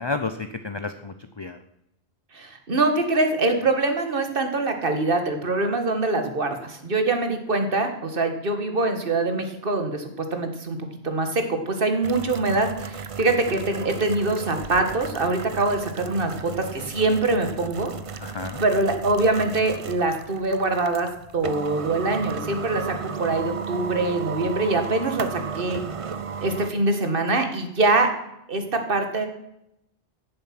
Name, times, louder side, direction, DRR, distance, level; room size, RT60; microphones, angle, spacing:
voice 1, 0.0-1.6 18.2-18.6, left 3 dB, 30° left, 9 dB, 0.6 m, -31 dB
voice 2, 2.3-10.8 11.0-17.9 18.6-21.1 21.3-25.8 26.4-28.1 28.5-29.3, right 2 dB, 60° right, 6 dB, 1.8 m, -24 dB
sound 1, 12.0-26.7, right 6 dB, 40° right, 0.6 m, -35 dB
15.0 x 7.6 x 6.0 m, 0.82 s
omnidirectional pair, 1.1 m